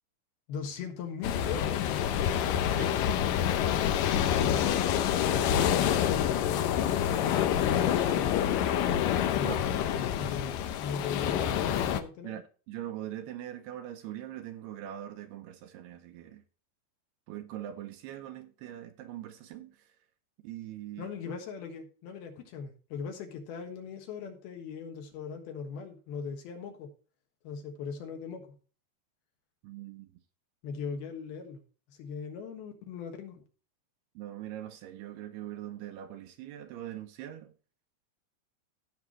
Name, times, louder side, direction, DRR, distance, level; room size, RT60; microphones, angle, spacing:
voice 1, 0.5-2.0 4.4-8.3 9.3-12.4 21.0-26.9 27.4-28.6 30.6-31.6 31.9-33.4, left 6 dB, 65° left, 3.1 m, -39 dB
sound 1, 1.2-12.0, left 10 dB, 85° left, 1.9 m, -27 dB
voice 2, 12.2-16.4 17.3-19.7 20.4-21.1 29.6-30.1 34.2-37.5, right 12 dB, 75° right, 2.6 m, -42 dB
16.5 x 6.0 x 3.1 m
omnidirectional pair, 5.1 m